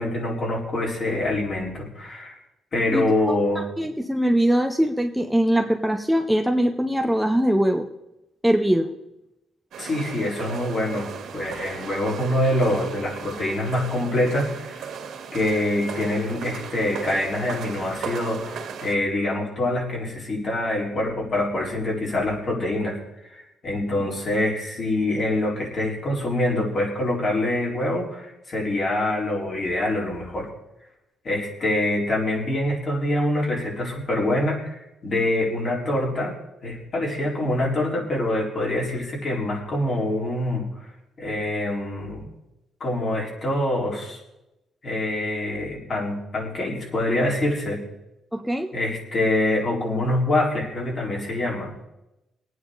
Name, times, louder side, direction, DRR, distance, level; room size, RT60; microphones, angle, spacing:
voice 1, 0.0-2.4 2.7-3.7 9.8-14.9 15.3-30.5 31.2-36.3 36.6-40.7 41.2-42.2 42.8-44.2 44.8-47.8 48.7-51.7, left 1 dB, 45° left, -3 dB, 4.5 m, -25 dB
voice 2, 2.9-7.9 8.4-9.0 24.0-24.1 48.3-48.7, equal, 5° right, 4 dB, 0.7 m, -22 dB
sound 1, 9.7-18.9, right 6 dB, 70° right, 2.0 m, -36 dB
22.0 x 9.2 x 4.1 m, 0.93 s
cardioid pair, 125°, 0 cm